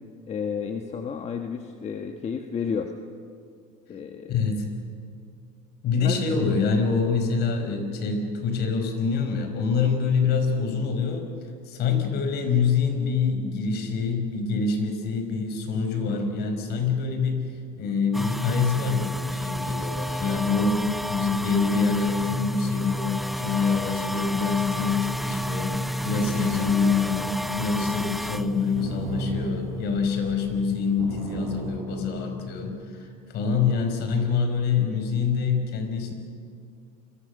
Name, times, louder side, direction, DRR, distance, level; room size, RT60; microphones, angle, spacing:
voice 1, 0.3-2.9 3.9-4.4 5.9-6.2, left 6 dB, 35° left, 5 dB, 1.6 m, -31 dB
voice 2, 4.3-4.7 5.8-11.3 11.7-17.5 17.8-33.1 33.3-36.1, left 5 dB, 60° left, 6 dB, 5.2 m, -25 dB
sound 1, 18.1-30.9 31.2-33.6, equal, ahead, 0.5 m, -32 dB
sound 2, 24.7-30.3 30.7-32.6, right 7 dB, 90° right, 4.2 m, -38 dB
30.0 x 22.5 x 6.7 m, 2.3 s
supercardioid pair, 100°, 19 cm